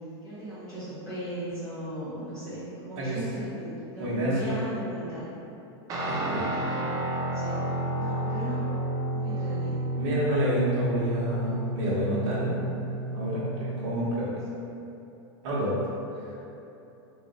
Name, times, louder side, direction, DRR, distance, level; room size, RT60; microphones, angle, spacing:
voice 1, 0.2-5.3 6.5-6.8 7.3-7.6 7.9-8.6 9.1-9.9, right 1 dB, 5° left, -18 dB, 1.3 m, -37 dB
voice 2, 4.0-4.4 6.0-6.5 10.0-12.6 13.1-14.3 15.4-15.8 16.2-16.4, equal, 55° right, -9 dB, 1.2 m, -28 dB
Guitar, 5.9-14.0, right 1 dB, 25° right, 0.4 m, -31 dB
3.2 x 2.6 x 4.0 m, 3.0 s
supercardioid pair, 145°, 15 cm